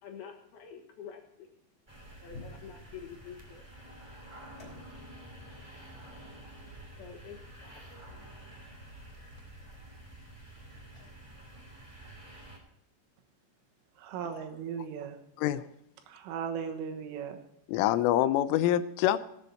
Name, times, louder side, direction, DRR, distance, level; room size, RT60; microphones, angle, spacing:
voice 1, 0.0-1.5 2.2-3.6 5.8-5.9 7.0-8.2, left 7 dB, 60° left, 3.0 m, -48 dB
sound 1, 1.9-11.1, left 2 dB, 20° left, 4.2 m, -55 dB
sound 2, 1.9-12.6, right 1 dB, 10° right, 1.6 m, -50 dB
voice 2, 14.0-15.2 16.1-17.4, right 7 dB, 85° right, 4.0 m, -37 dB
voice 3, 17.7-19.3, left 12 dB, 90° left, 3.3 m, -26 dB
19.0 x 8.1 x 4.2 m
omnidirectional pair, 5.6 m